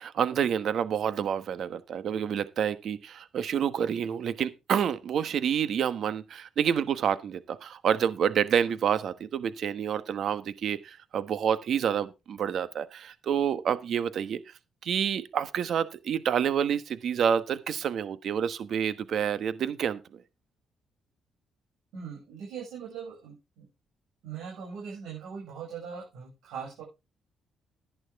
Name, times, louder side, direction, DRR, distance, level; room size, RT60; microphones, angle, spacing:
voice 1, 0.0-14.4 14.8-20.0, right 8 dB, 65° right, 1.2 m, -28 dB
voice 2, 21.9-23.6 24.2-26.8, right 6 dB, 90° right, 7.0 m, -40 dB
11.5 x 11.0 x 3.6 m
cardioid pair, 90°, 0 cm